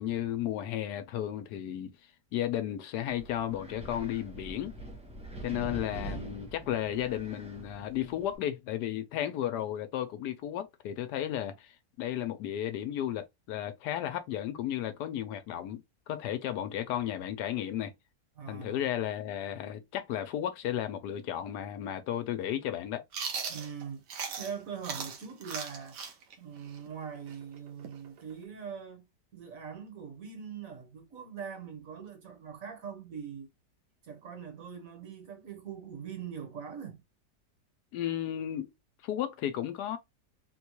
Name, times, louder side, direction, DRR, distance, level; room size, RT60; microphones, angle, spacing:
voice 1, 0.0-1.9 2.3-4.7 5.4-11.7 12.0-15.8 16.1-17.9 18.5-23.0 37.9-38.7 39.0-40.0, left 11 dB, 80° left, 1.1 m, -34 dB
Wind, 3.1-8.4, right 1 dB, 10° right, 0.4 m, -44 dB
voice 2, 18.4-18.9 23.5-24.0 24.4-26.0 26.4-29.1 29.3-33.5 34.0-37.0, right 7 dB, 60° right, 1.3 m, -42 dB
Chewing mastication, 23.1-24.6 24.8-28.4, right 6 dB, 85° right, 1.4 m, -38 dB
3.9 x 2.2 x 3.0 m
omnidirectional pair, 1.8 m